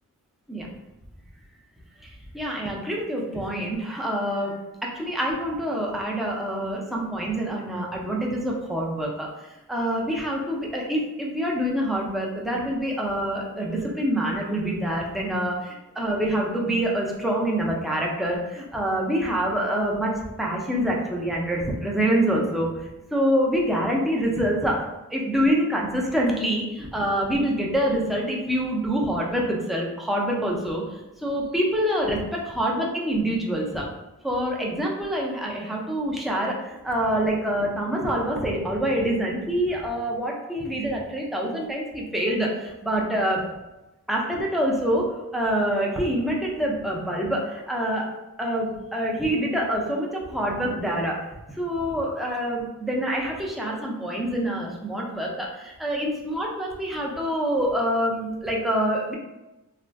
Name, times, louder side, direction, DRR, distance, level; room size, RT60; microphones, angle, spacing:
voice 1, 2.3-4.5 4.8-9.3 9.7-15.5 16.0-24.8 25.1-26.7 26.9-33.9 34.2-43.5 44.1-48.1 48.4-51.2 51.5-59.1, equal, ahead, -2 dB, 0.5 m, -26 dB
2.4 x 2.1 x 3.3 m, 0.99 s
wide cardioid pair, 55°, 35 cm